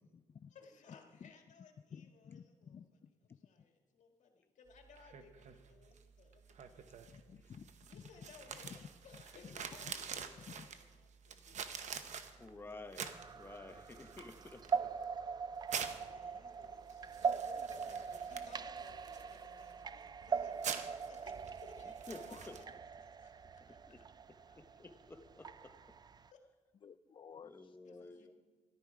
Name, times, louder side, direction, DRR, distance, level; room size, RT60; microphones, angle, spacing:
voice 1, 0.5-6.9 7.8-11.6 15.8-22.8 23.2-24.0 24.3-24.6 26.3-26.4 27.8-28.3, left 5 dB, 70° left, 3 dB, 1.7 m, -61 dB
voice 2, 1.9-2.8 7.1-7.7 26.8-27.7, left 7 dB, 40° left, 11 dB, 0.4 m, -54 dB
sound 1, 4.7-22.6, right 7 dB, 65° right, 0.9 m, -48 dB
voice 3, 12.4-13.1 13.4-14.9 22.1-22.6 23.7-24.0 24.6-25.7 27.4-28.3, left 2 dB, 15° left, 6 dB, 0.9 m, -52 dB
sound 2, 13.0-26.3, right 6 dB, 30° right, 0.4 m, -42 dB
13.5 x 11.5 x 4.8 m, 1.4 s
cardioid pair, 90°, 13 cm